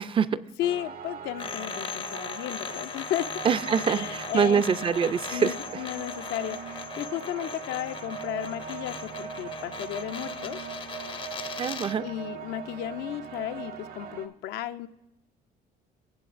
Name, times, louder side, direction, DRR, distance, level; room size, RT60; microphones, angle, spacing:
voice 1, 0.0-0.4 3.4-5.8 11.6-12.0, right 6 dB, 30° right, 15 dB, 0.4 m, -25 dB
voice 2, 0.6-3.3 3.8-4.6 5.3-10.6 12.0-14.9, left 13 dB, 80° left, 11 dB, 0.5 m, -34 dB
sound 1, 0.6-14.3, right 8 dB, 60° right, 0.8 m, -40 dB
sound 2, 1.4-12.0, left 6 dB, 30° left, 0.5 m, -39 dB
18.5 x 7.7 x 2.5 m, 0.95 s
cardioid pair, 110°, 17 cm